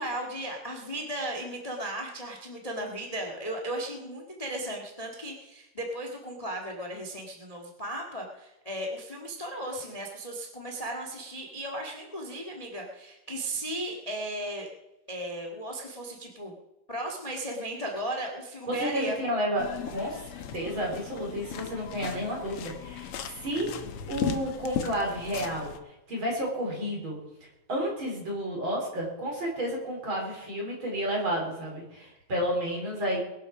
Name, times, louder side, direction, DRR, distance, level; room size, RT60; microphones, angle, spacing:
voice 1, 0.0-14.7 15.1-16.5 16.9-19.2, right 1 dB, 25° left, 2 dB, 0.8 m, -36 dB
voice 2, 18.7-27.2 27.7-33.2, equal, 35° right, -1 dB, 4.9 m, -31 dB
sound 1, 19.6-25.8, left 9 dB, 80° left, 1.3 m, -37 dB
21.5 x 7.8 x 6.1 m, 0.95 s
omnidirectional pair, 4.1 m